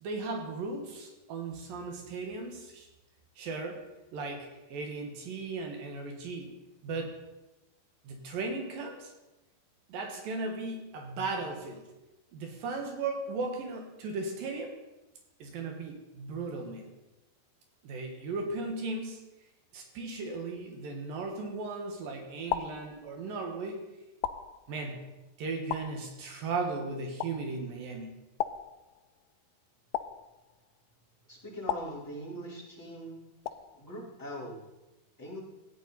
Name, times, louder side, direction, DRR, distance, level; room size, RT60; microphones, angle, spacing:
voice 1, 0.0-2.9 3.4-3.8 4.1-6.5 6.8-7.1 8.0-9.1 9.9-11.8 12.3-14.8 15.4-16.9 17.8-19.3 19.7-23.9 24.7-25.0 25.4-28.2, right 3 dB, 75° right, 3 dB, 3.0 m, -36 dB
sound 1, 21.4-21.9 22.5-23.5 24.2-25.1 25.7-26.5 27.2-27.8 28.4-29.3 29.9-30.8 31.7-32.6 33.5-34.1, left 11 dB, 80° left, 1.8 m, -38 dB
voice 2, 31.3-33.2 33.7-34.6 35.2-35.4, equal, 5° left, -9 dB, 3.7 m, -41 dB
15.5 x 9.3 x 4.1 m, 1.0 s
omnidirectional pair, 4.0 m